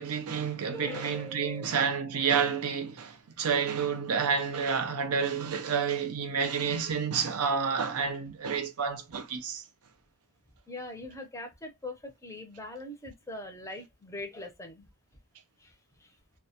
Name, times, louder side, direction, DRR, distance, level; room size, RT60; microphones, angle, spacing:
voice 1, 0.0-9.6, right 6 dB, 75° right, 0.5 m, -29 dB
voice 2, 0.7-1.7 10.7-14.9 15.6-15.7 16.0-16.1, left 1 dB, 15° left, 0.6 m, -42 dB
2.1 x 2.1 x 2.7 m
head